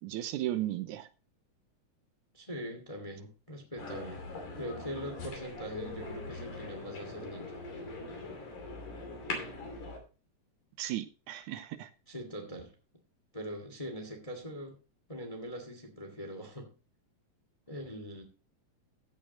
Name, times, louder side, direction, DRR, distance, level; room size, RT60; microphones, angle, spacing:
voice 1, 0.0-1.1 10.8-11.9, right 13 dB, 85° right, 11 dB, 2.3 m, -35 dB
voice 2, 2.3-4.2 4.6-7.6 12.1-12.7 13.3-14.8 15.1-16.7 17.7-18.2, equal, 15° left, 4 dB, 1.6 m, -42 dB
sound 1, 3.8-10.0, left 3 dB, 80° left, 4.3 m, -41 dB
15.0 x 8.9 x 2.9 m, 0.33 s
omnidirectional pair, 3.5 m